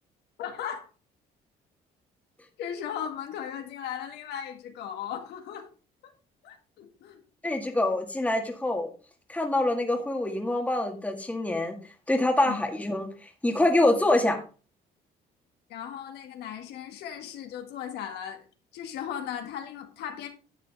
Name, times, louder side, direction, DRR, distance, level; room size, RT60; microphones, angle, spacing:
voice 1, 0.4-0.9 2.6-5.7 6.0-6.1 6.4-7.2 12.5-12.6 15.7-18.5 18.7-20.3, left 9 dB, 80° left, 5 dB, 1.9 m, -37 dB
voice 2, 7.4-8.9 9.3-11.8 12.1-13.1 13.4-14.4, left 1 dB, 10° left, 3 dB, 1.9 m, -25 dB
11.0 x 7.3 x 3.5 m, 0.35 s
cardioid pair, 110°, 17 cm